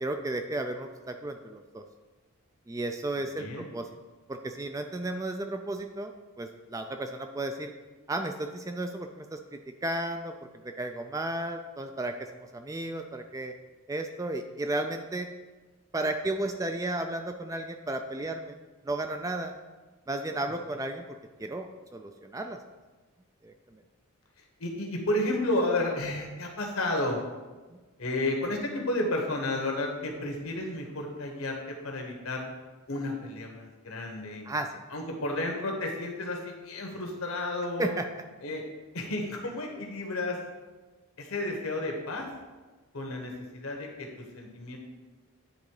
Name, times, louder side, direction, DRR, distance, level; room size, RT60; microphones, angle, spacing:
voice 1, 0.0-1.8 2.7-3.9 4.3-7.7 8.1-10.3 10.6-13.5 13.9-15.3 15.9-18.6 18.8-19.5 20.1-21.0 21.4-22.6 23.4-23.5 34.5-34.8 37.8-38.1, right 2 dB, 15° right, 6 dB, 0.3 m, -33 dB
voice 2, 24.6-27.2 28.0-32.5 32.9-34.4 34.9-37.9 38.4-38.6 38.9-40.4 41.2-42.3 42.9-44.8, left 2 dB, 70° left, 1 dB, 1.4 m, -32 dB
9.6 x 3.9 x 4.8 m, 1.3 s
head